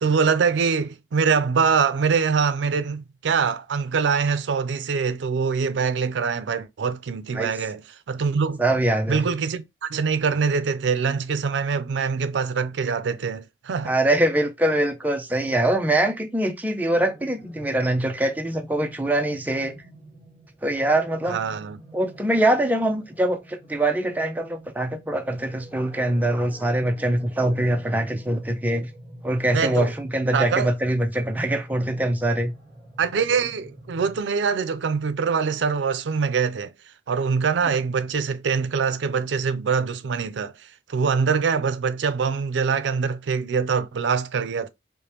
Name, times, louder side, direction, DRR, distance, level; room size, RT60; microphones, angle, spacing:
voice 1, 0.0-7.8 8.1-8.6 9.1-13.9 21.3-21.8 29.5-29.9 30.3-30.7 33.0-36.7 37.1-40.5 40.9-44.7, right 5 dB, 90° right, 0.4 m, -24 dB
voice 2, 8.6-9.3 13.8-19.7 20.6-21.4 21.9-28.9 29.2-32.5, right 1 dB, 10° right, 0.4 m, -23 dB
sound 1, 16.9-34.2, right 1 dB, 5° left, 1.4 m, -47 dB
5.0 x 2.1 x 2.8 m
head